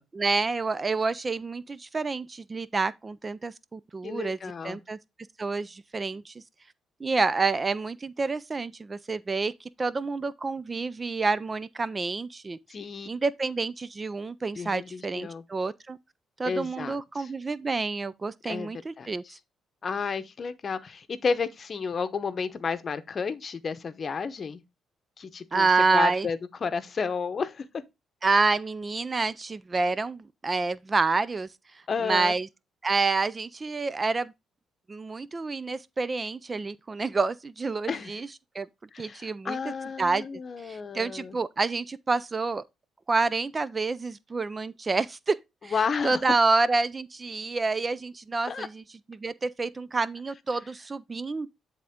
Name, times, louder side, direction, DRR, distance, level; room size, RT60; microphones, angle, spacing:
voice 1, 0.1-4.4 4.6-5.0 5.4-6.3 7.0-12.6 13.1-16.0 16.4-19.4 25.5-26.3 28.2-31.5 32.0-32.5 32.8-34.3 34.9-38.3 38.5-38.7 39.0-39.7 40.0-40.3 40.6-42.6 43.1-45.4 45.6-45.8 46.0-48.8 49.1-51.5, right 3 dB, 30° right, 0.4 m, -28 dB
voice 2, 4.0-4.8 12.7-13.1 14.5-15.4 16.4-17.3 18.5-18.7 19.0-19.3 19.8-24.6 25.2-25.7 25.9-27.7 31.9-32.4 37.9-38.2 38.9-41.4 45.7-46.2 48.5-48.7, left 5 dB, 45° left, 0.8 m, -32 dB
10.0 x 3.6 x 3.6 m
cardioid pair, 90°, 0 cm